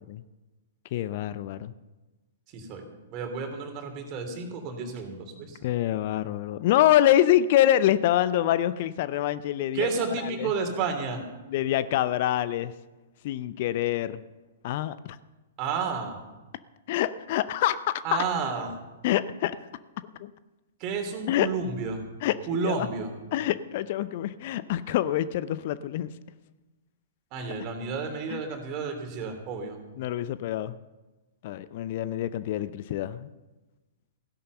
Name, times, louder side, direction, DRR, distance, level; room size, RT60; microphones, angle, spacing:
voice 1, 0.9-1.7 5.6-9.9 10.2-10.5 11.5-12.7 13.2-14.2 14.6-15.0 16.9-18.2 19.0-19.6 20.2-20.3 21.3-21.5 22.2-22.9 23.3-26.1 28.3-28.4 30.0-30.7 31.4-33.3, left 12 dB, 45° left, 15 dB, 0.6 m, -25 dB
voice 2, 2.5-2.9 3.1-5.6 9.7-11.2 15.6-16.2 18.0-18.7 20.8-22.0 22.5-23.1 27.3-29.8, right 5 dB, 30° right, 4 dB, 3.2 m, -31 dB
16.0 x 11.0 x 6.7 m, 1.1 s
figure-of-eight pair, 110°, 0 cm